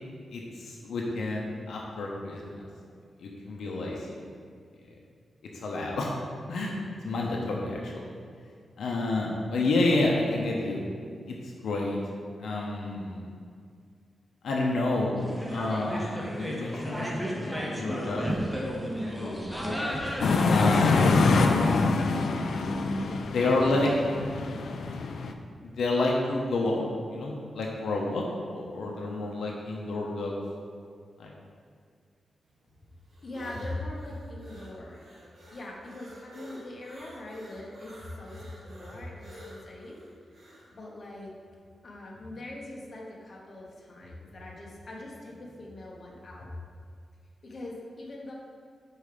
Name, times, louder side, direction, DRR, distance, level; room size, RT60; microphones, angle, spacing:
voice 1, 0.3-2.6 3.2-4.2 5.5-6.1 6.5-6.8 7.0-8.0 8.8-10.9 11.3-12.0 12.4-13.2 14.4-15.2 15.5-20.0 20.5-21.4 23.3-24.1 25.6-26.8 27.1-28.2 28.5-30.3 31.2-31.3, left 2 dB, 85° left, -2 dB, 0.8 m, -30 dB
sound 1, 15.2-20.8, equal, ahead, 0.8 m, -33 dB
sound 2, 20.2-25.3, left 3 dB, 65° left, 0.4 m, -25 dB
sound 3, 32.4-40.7, equal, 60° right, 1.7 m, -49 dB
voice 2, 33.2-35.0 35.5-40.0 40.7-41.3 41.8-46.5 47.4-48.3, left 1 dB, 40° left, -3 dB, 1.1 m, -41 dB
5.4 x 4.7 x 5.0 m, 2.2 s
wide cardioid pair, 150°, 0 cm